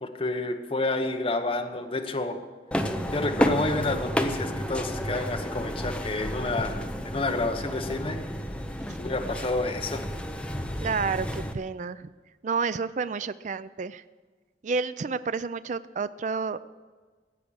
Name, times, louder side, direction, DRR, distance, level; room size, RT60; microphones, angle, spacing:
voice 1, 0.0-2.4 3.1-8.2 9.0-10.0, left 2 dB, 30° left, 4 dB, 1.0 m, -29 dB
sound 1, 2.7-11.5, equal, 5° left, 0.8 m, -31 dB
voice 2, 10.8-12.1 12.4-14.0 14.6-16.6, right 5 dB, 45° right, 14 dB, 0.4 m, -30 dB
15.5 x 8.6 x 6.3 m, 1.4 s
head